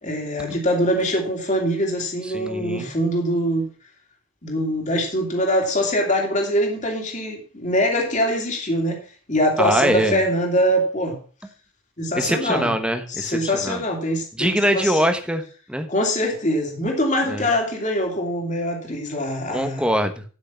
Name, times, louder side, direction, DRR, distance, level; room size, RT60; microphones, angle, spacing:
voice 1, 0.0-3.6 4.4-9.0 9.3-11.2 12.0-12.7 13.1-15.0 15.9-19.9, equal, 35° left, 2.8 m, -23 dB
voice 2, 2.3-2.9 9.6-10.2 12.1-13.8 14.4-15.4 15.7-15.9 17.3-17.5 19.5-20.2, equal, 5° right, 1.2 m, -23 dB
12.0 x 6.4 x 5.9 m
head